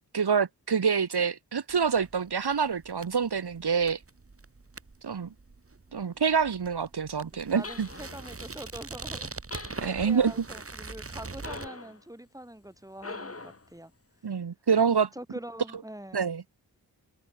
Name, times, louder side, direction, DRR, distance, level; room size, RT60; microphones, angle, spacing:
voice 1, 0.1-4.0 5.0-5.3 5.9-7.9 9.8-10.3 14.2-15.1 16.1-16.4, right 6 dB, 75° right, 1.5 m, -26 dB
sound 1, 1.7-11.7, right 3 dB, 35° right, 1.6 m, -43 dB
voice 2, 7.3-9.3 9.8-13.9 15.1-16.2, right 1 dB, 10° right, 4.7 m, -44 dB
sound 2, 7.6-8.4 9.5-10.3 11.4-12.0 13.0-13.7, left 3 dB, 35° left, 2.2 m, -42 dB
wide cardioid pair, 55°, 40 cm